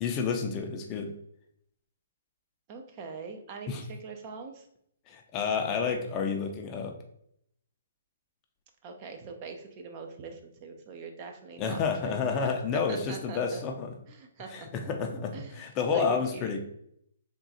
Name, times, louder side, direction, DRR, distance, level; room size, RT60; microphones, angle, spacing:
voice 1, 0.0-1.1 3.7-3.8 5.1-6.9 11.6-13.9 14.5-16.6, left 5 dB, 25° left, 4 dB, 0.5 m, -30 dB
voice 2, 2.7-4.7 8.8-12.6 12.9-13.6 14.1-14.7 15.3-16.6, right 4 dB, 35° right, 4 dB, 0.5 m, -43 dB
3.6 x 2.3 x 4.1 m, 0.72 s
hypercardioid pair, 145°, 0 cm